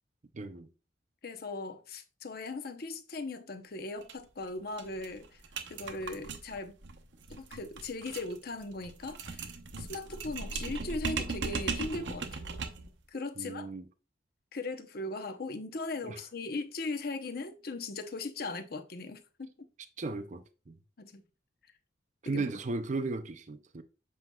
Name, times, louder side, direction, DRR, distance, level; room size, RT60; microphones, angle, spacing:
voice 1, 0.3-0.7 13.4-13.8 16.0-16.2 20.0-20.8 22.2-23.8, right 3 dB, 40° right, 0.5 m, -36 dB
voice 2, 1.2-5.3 5.7-6.7 7.3-9.5 9.8-12.4 13.1-13.7 14.5-19.5 21.0-21.2 22.3-22.4, left 3 dB, 55° left, 0.7 m, -38 dB
sound 1, 4.0-4.1 4.4-4.5 4.8-12.9, right 4 dB, 75° right, 0.8 m, -38 dB
7.7 x 5.4 x 2.3 m
head